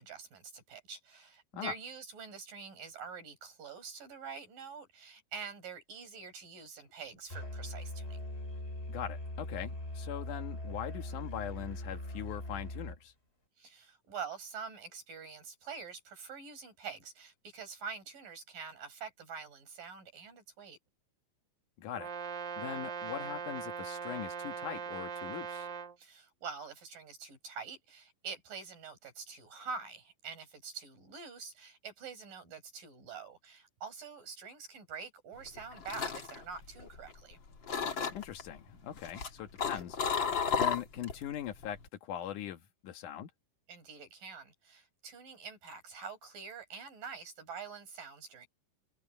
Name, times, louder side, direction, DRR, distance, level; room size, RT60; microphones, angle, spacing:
voice 1, 0.0-8.2 13.6-20.8 26.0-37.4 43.7-48.5, right 5 dB, 75° right, 7.3 m, -46 dB
Musical instrument, 7.3-13.0, left 1 dB, 15° left, 5.1 m, -41 dB
voice 2, 8.9-13.1 21.8-22.1 22.6-25.7 38.1-40.0 40.6-43.3, left 10 dB, 70° left, 2.8 m, -41 dB
Brass instrument, 22.0-26.0, right 6 dB, 40° right, 1.9 m, -40 dB
sound 1, 35.5-37.3 37.7-38.4 39.0-41.2 41.5-41.9, left 6 dB, 40° left, 2.7 m, -33 dB
omnidirectional pair, 3.9 m